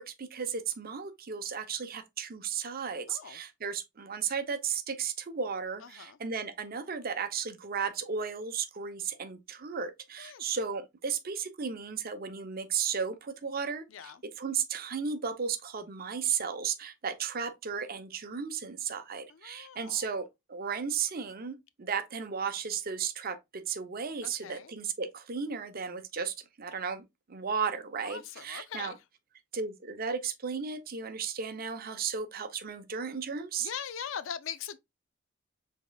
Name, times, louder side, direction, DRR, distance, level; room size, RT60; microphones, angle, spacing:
voice 1, 0.0-27.0 27.3-29.0 29.5-33.7, right 6 dB, 50° right, 0.6 m, -34 dB
voice 2, 3.1-3.4 5.9-6.2 10.2-10.4 13.9-14.2 19.3-20.0 24.2-24.7 28.1-29.0 33.6-34.8, left 8 dB, 70° left, 0.4 m, -41 dB
5.2 x 3.6 x 2.2 m
head